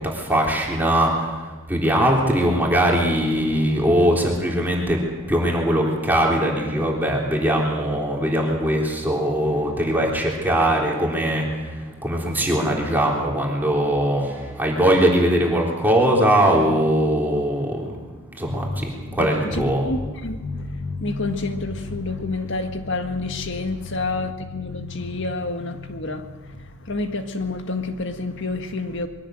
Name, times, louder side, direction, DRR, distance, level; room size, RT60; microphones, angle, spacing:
voice 1, 0.0-19.9, right 1 dB, 10° right, 3.7 m, -21 dB
voice 2, 18.6-29.1, left 3 dB, 60° left, 1.8 m, -28 dB
22.5 x 17.0 x 7.8 m
head